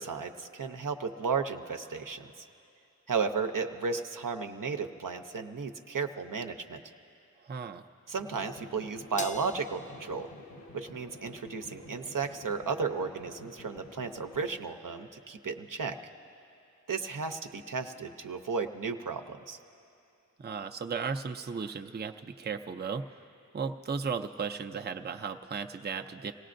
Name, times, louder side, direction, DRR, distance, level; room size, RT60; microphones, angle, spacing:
voice 1, 0.0-2.5 3.1-6.8 8.1-10.3 10.7-16.0 16.9-19.6, right 5 dB, 75° right, 5 dB, 0.7 m, -34 dB
voice 2, 7.4-7.9 20.4-23.2 23.5-26.3, right 5 dB, 30° right, 5 dB, 0.5 m, -35 dB
sound 1, 8.2-14.5, left 2 dB, 80° left, 1.2 m, -50 dB
Crash cymbal, 9.2-11.7, left 3 dB, 25° left, 0.4 m, -45 dB
27.0 x 17.5 x 2.6 m, 2.6 s
wide cardioid pair, 55°, 33 cm